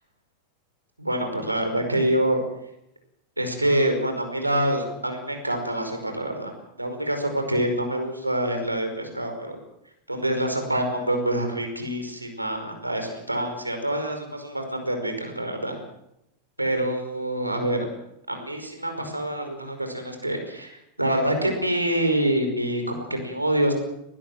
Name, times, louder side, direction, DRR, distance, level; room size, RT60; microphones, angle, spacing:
voice 1, 1.0-2.4 3.4-6.5 6.8-9.6 10.1-15.8 16.6-17.9 18.3-23.7, right 1 dB, 85° right, 5 dB, 5.2 m, -26 dB
20.0 x 20.0 x 7.7 m, 0.81 s
figure-of-eight pair, 90°, 0 cm